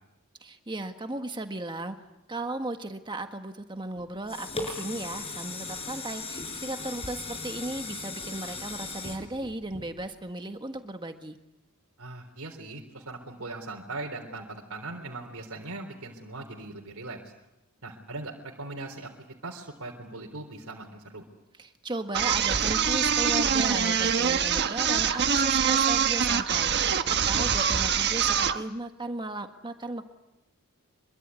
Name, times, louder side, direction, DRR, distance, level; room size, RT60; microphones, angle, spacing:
voice 1, 0.4-2.0 2.3-11.4 21.6-30.0, right 2 dB, 20° right, 6 dB, 1.6 m, -36 dB
sound 1, 4.0-10.3 10.8-10.9, left 3 dB, 25° left, 5.9 m, -38 dB
voice 2, 12.0-17.3 17.8-19.1 19.4-21.2 27.3-27.5, right 2 dB, 70° right, 1 dB, 3.8 m, -40 dB
sound 2, 22.1-28.6, right 7 dB, 50° right, 1.3 m, -24 dB
26.0 x 23.0 x 9.7 m, 0.93 s
head